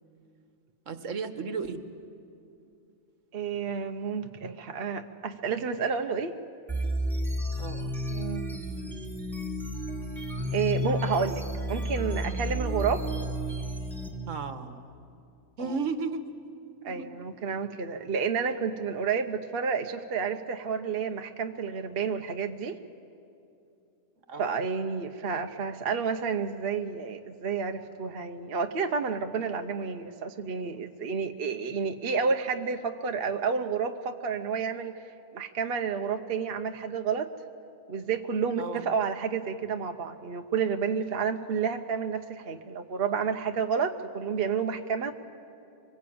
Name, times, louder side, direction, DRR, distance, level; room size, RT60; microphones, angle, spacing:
voice 1, 0.9-1.8 7.6-7.9 14.3-15.0 15.6-16.3 16.8-17.1 24.3-24.5 38.6-38.8, right 4 dB, 70° right, 9 dB, 1.5 m, -34 dB
voice 2, 3.3-6.4 8.1-8.5 10.5-13.1 15.6-15.8 16.8-22.8 24.4-34.9 35.3-37.3 37.9-45.1, right 6 dB, 50° right, 6 dB, 1.0 m, -30 dB
sound 1, 6.7-14.1, equal, ahead, 2.2 m, -32 dB
25.0 x 21.5 x 8.6 m, 2.6 s
omnidirectional pair, 1.4 m